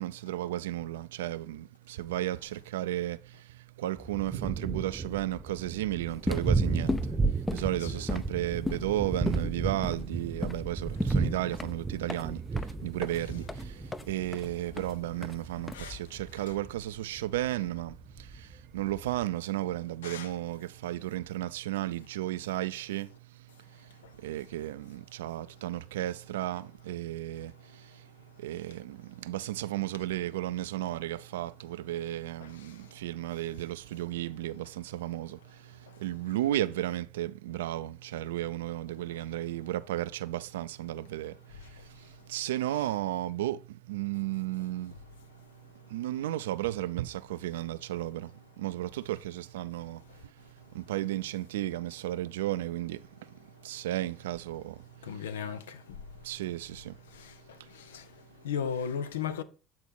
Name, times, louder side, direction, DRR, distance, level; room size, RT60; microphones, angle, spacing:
voice 1, 0.0-55.7 56.0-57.0 57.6-57.7, right 14 dB, 85° right, 0.3 m, -34 dB
Thunder, 4.0-19.2, right 3 dB, 20° right, 0.8 m, -34 dB
sound 1, 6.1-16.3, left 2 dB, 20° left, 0.6 m, -37 dB
voice 2, 55.0-56.0 57.1-58.1 58.4-59.4, left 7 dB, 85° left, 0.6 m, -36 dB
8.5 x 4.0 x 4.5 m
hypercardioid pair, 70°, 0 cm